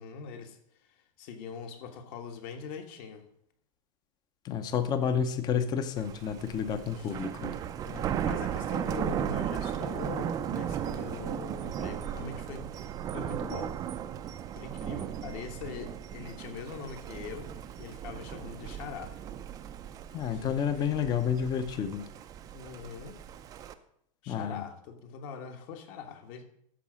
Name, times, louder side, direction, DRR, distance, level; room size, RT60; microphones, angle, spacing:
voice 1, 0.0-3.3 6.9-7.2 7.8-13.8 14.5-19.1 20.3-20.9 22.5-23.2 24.2-26.4, left 6 dB, 45° left, 7 dB, 1.5 m, -42 dB
voice 2, 4.4-7.5 20.1-22.0 24.3-24.6, left 7 dB, 25° left, 11 dB, 0.8 m, -30 dB
Thunder, 6.0-23.7, right 9 dB, 20° right, 0.5 m, -36 dB
13.0 x 4.9 x 6.3 m, 0.72 s
supercardioid pair, 155°, 18 cm